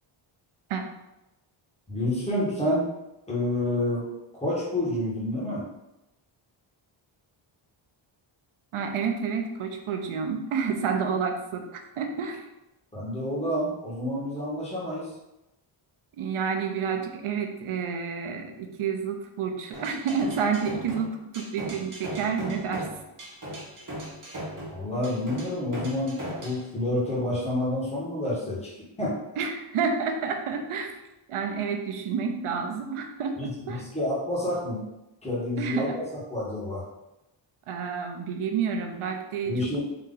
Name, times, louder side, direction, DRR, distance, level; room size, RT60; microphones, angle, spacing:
voice 1, 1.9-2.9 3.3-4.1 4.3-5.6 12.9-15.1 24.7-29.4 33.4-34.9 35.2-35.9 36.3-36.8 39.4-39.8, left 1 dB, 15° left, -7 dB, 1.5 m, -29 dB
voice 2, 8.7-12.4 16.2-22.9 29.4-31.0 31.3-33.8 35.6-36.0 37.7-39.8, right 6 dB, 80° right, 4 dB, 0.8 m, -29 dB
sound 1, 19.7-26.6, right 1 dB, 40° right, 1.5 m, -38 dB
3.9 x 2.8 x 3.9 m, 0.92 s
wide cardioid pair, 135°, 50 cm